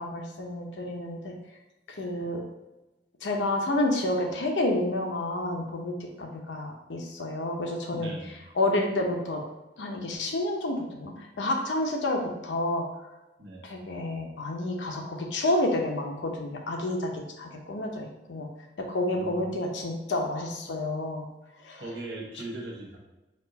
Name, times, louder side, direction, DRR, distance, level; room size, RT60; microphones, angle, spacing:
voice 1, 0.0-1.3 2.0-2.4 3.2-8.1 8.6-9.4 9.8-12.8 13.6-18.5 18.8-21.3 21.6-21.8, left 1 dB, 90° left, 2 dB, 0.7 m, -29 dB
voice 2, 7.9-8.4 13.4-13.6 19.1-19.5 21.8-23.0, right 2 dB, 75° right, -2 dB, 1.0 m, -39 dB
4.4 x 2.4 x 3.9 m, 1.0 s
head